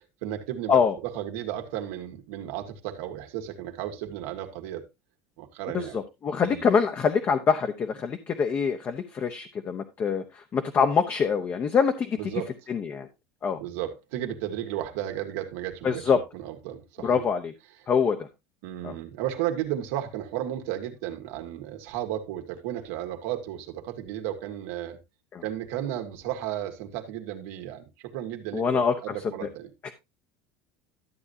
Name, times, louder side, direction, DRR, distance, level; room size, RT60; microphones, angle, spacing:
voice 1, 0.2-4.8 5.4-6.0 6.4-6.7 12.2-12.5 13.6-17.3 18.6-25.0 25.4-29.7, right 12 dB, 80° right, 1.8 m, -34 dB
voice 2, 5.7-12.3 12.7-13.1 13.4-13.6 15.8-16.2 17.0-17.5 17.9-18.3 18.8-18.9 25.3-25.4 28.5-29.5 29.8-29.9, left 6 dB, 30° left, 0.8 m, -25 dB
12.5 x 7.8 x 2.7 m
cardioid pair, 150°, 7 cm